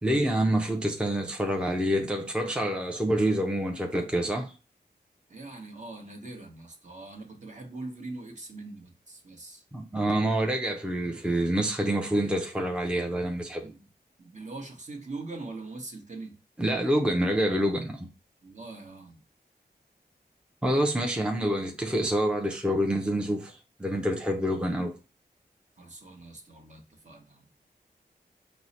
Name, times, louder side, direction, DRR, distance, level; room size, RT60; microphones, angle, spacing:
voice 1, 0.0-4.5 9.7-13.7 16.6-18.1 20.6-24.9, right 1 dB, 5° right, 0.5 m, -27 dB
voice 2, 5.3-9.6 13.6-13.9 14.2-16.4 18.4-19.2 21.0-21.2 25.8-27.5, right 2 dB, 45° right, 1.0 m, -42 dB
4.5 x 2.1 x 4.0 m
wide cardioid pair, 75°, 17 cm